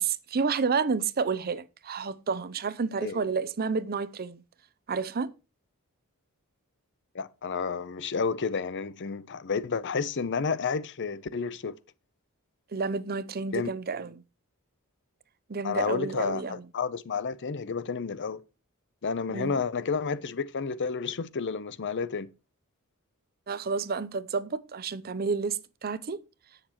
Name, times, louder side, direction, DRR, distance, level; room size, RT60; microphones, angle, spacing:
voice 1, 0.0-4.4 4.9-5.3 12.7-14.2 15.5-16.7 19.3-19.6 23.5-26.2, right 5 dB, 45° right, 0.6 m, -30 dB
voice 2, 7.1-11.7 13.5-13.7 15.6-18.4 19.0-22.3, left 5 dB, 55° left, 0.6 m, -31 dB
17.5 x 6.6 x 3.0 m
head